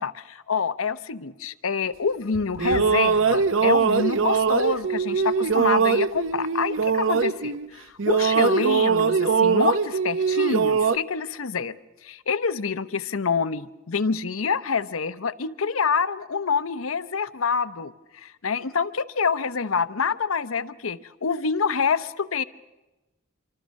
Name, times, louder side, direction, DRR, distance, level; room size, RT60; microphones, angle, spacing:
voice 1, 0.0-11.7 12.0-22.4, left 5 dB, 90° left, 13 dB, 0.8 m, -27 dB
sound 1, 2.3-7.7 8.0-11.0, right 5 dB, 70° right, 0.7 m, -22 dB
26.5 x 24.5 x 6.4 m, 1.1 s
head